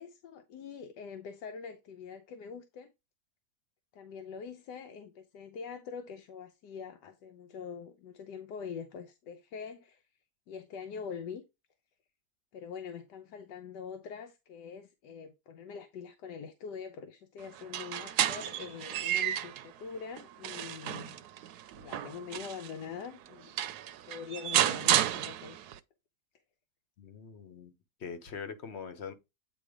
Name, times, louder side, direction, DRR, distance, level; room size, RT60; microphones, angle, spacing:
voice 1, 0.0-2.9 3.9-10.1 10.5-11.4 12.5-21.2 21.7-23.6 24.0-25.6, left 6 dB, 90° left, 1.4 m, -44 dB
sound 1, 17.6-19.7 20.2-22.7 23.3-23.4 23.6-25.8, right 11 dB, 75° right, 1.1 m, -31 dB
voice 2, 27.0-27.7 28.0-29.1, left 6 dB, 50° left, 1.0 m, -42 dB
8.8 x 3.0 x 4.9 m
omnidirectional pair, 1.8 m